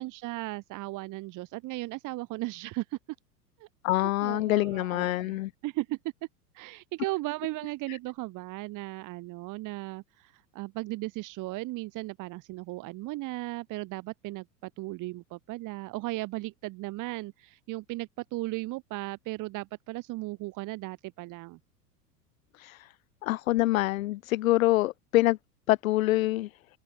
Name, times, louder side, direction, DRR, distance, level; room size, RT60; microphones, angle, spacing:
voice 1, 0.0-3.0 3.6-3.7 3.9-6.0 6.5-21.6, right 20 dB, 40° right, 3.4 m, -36 dB
voice 2, 3.8-5.5 7.9-8.0 22.6-22.9 23.2-25.4 25.7-26.5, left 17 dB, 60° left, 0.6 m, -26 dB
open air
figure-of-eight pair, 90°, 48 cm